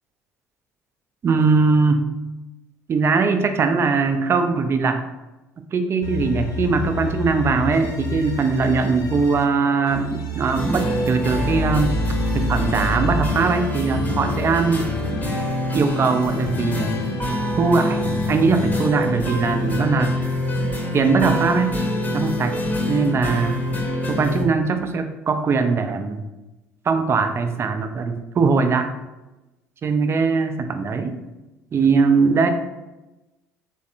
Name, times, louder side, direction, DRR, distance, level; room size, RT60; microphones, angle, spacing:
voice 1, 1.2-2.0 2.9-5.0 5.6-11.9 12.3-14.9 15.7-16.9 17.6-18.0 18.3-20.2 20.9-21.8 22.1-22.6 22.9-23.6 24.1-26.2 26.9-28.9 29.8-31.2 31.7-32.5, right 4 dB, 30° right, 7 dB, 0.4 m, -20 dB
sound 1, 6.0-9.4 9.9-15.4 15.9-19.7, left 3 dB, 50° left, 0.6 m, -32 dB
sound 2, 10.5-24.4, left 1 dB, 20° left, 0.8 m, -25 dB
3.2 x 3.2 x 2.7 m, 1.0 s
figure-of-eight pair, 55°, 8 cm